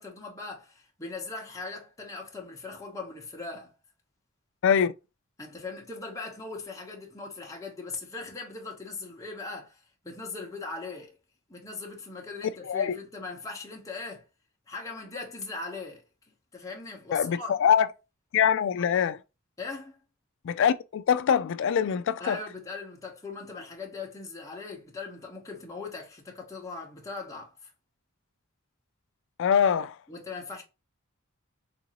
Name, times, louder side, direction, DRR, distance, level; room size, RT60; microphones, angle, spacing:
voice 1, 0.0-3.7 5.4-11.1 11.5-14.2 14.7-16.0 16.5-17.5 19.6-20.0 22.2-27.7 30.1-30.6, left 3 dB, 15° left, 0.8 m, -39 dB
voice 2, 4.6-4.9 12.7-12.9 17.1-17.9 18.3-19.2 20.4-22.4 29.4-30.0, left 8 dB, 60° left, 0.3 m, -23 dB
3.7 x 2.5 x 2.9 m
head